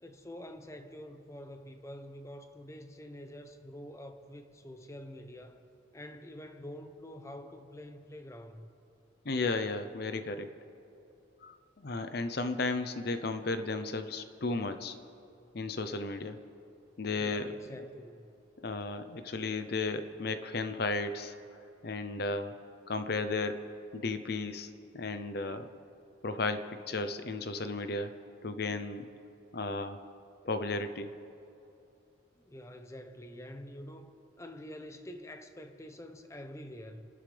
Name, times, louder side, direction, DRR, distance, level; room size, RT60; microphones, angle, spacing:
voice 1, 0.0-5.7 5.9-8.7 17.1-18.3 32.4-37.1, left 1 dB, 15° left, 6 dB, 0.7 m, -47 dB
voice 2, 9.2-10.5 11.4-14.9 15.5-16.4 17.0-17.6 18.6-21.3 21.8-22.5 22.9-23.6 23.9-25.7 26.2-28.2 28.4-29.1 29.5-30.0 30.4-31.1, left 3 dB, 55° left, 9 dB, 0.7 m, -34 dB
28.5 x 12.5 x 3.4 m, 2.8 s
head